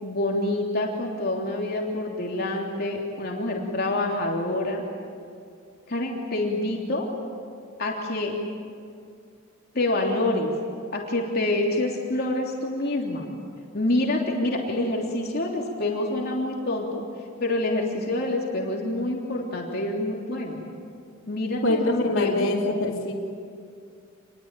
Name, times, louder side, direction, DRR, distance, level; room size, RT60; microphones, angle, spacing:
voice 1, 0.0-4.8 5.9-7.1 7.8-8.4 9.7-10.5 10.9-13.2 13.7-17.0 17.4-20.6 21.3-22.5, left 2 dB, 50° left, -1 dB, 3.3 m, -27 dB
voice 2, 21.6-23.1, left 2 dB, 80° left, -6 dB, 2.8 m, -24 dB
28.0 x 22.0 x 9.1 m, 2.3 s
head